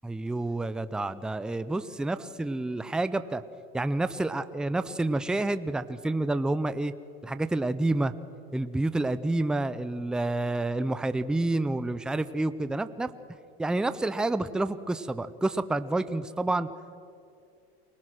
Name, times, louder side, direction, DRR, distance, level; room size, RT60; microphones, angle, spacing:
voice 1, 0.0-3.4 3.7-6.9 7.2-8.1 8.5-13.1 13.6-16.7, right 2 dB, ahead, 12 dB, 0.4 m, -29 dB
24.5 x 19.0 x 6.2 m, 2.5 s
supercardioid pair, 130°, 31 cm